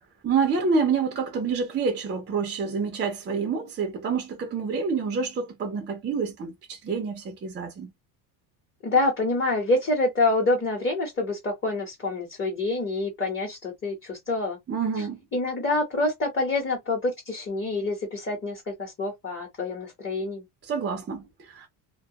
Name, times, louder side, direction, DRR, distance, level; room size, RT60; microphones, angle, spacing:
voice 1, 0.2-7.9 14.7-15.2 20.6-21.7, right 5 dB, 25° right, 0.5 m, -27 dB
voice 2, 8.8-14.6 15.3-20.4, left 2 dB, 25° left, 0.9 m, -26 dB
2.2 x 2.0 x 2.7 m
cardioid pair, 140°, 46 cm